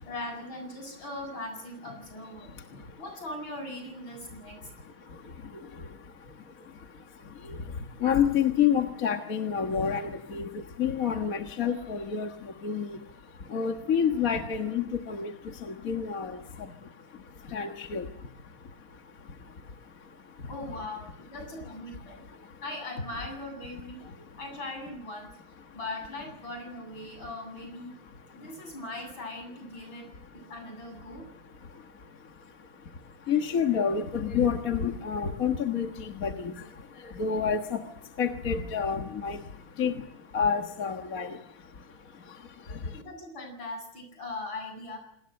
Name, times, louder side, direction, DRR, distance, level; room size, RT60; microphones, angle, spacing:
voice 1, 0.0-4.7 20.4-22.2 22.6-24.1 24.4-25.3 25.7-27.9 28.3-30.1 30.3-31.3 42.9-45.0, left 2 dB, 70° left, 5 dB, 9.0 m, -40 dB
voice 2, 2.4-3.0 4.4-20.5 22.0-22.6 24.0-24.4 25.7-25.8 27.0-27.2 27.9-28.7 29.9-30.5 31.0-43.0, left 7 dB, 45° left, 4 dB, 1.8 m, -31 dB
27.0 x 20.0 x 7.8 m, 0.69 s
omnidirectional pair, 2.2 m